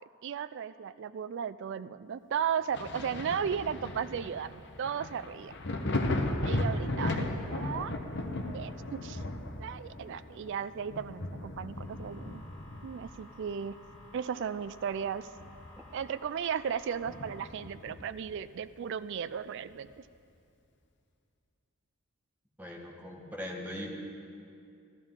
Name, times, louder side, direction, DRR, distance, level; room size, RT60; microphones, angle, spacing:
voice 1, 0.2-5.5 6.4-7.9 8.5-9.2 9.6-12.4 12.8-13.8 14.1-15.3 15.9-20.0, right 7 dB, 55° right, 14 dB, 0.3 m, -35 dB
Thunder, 2.7-14.1 14.5-16.0 16.3-16.4 17.0-18.3 19.7-19.8, left 1 dB, 55° left, 0.9 m, -36 dB
sound 1, 11.7-17.5, left 1 dB, 15° left, 3.8 m, -55 dB
voice 2, 22.6-23.9, left 1 dB, 10° right, -2 dB, 1.3 m, -40 dB
14.5 x 13.5 x 3.7 m, 2.5 s
head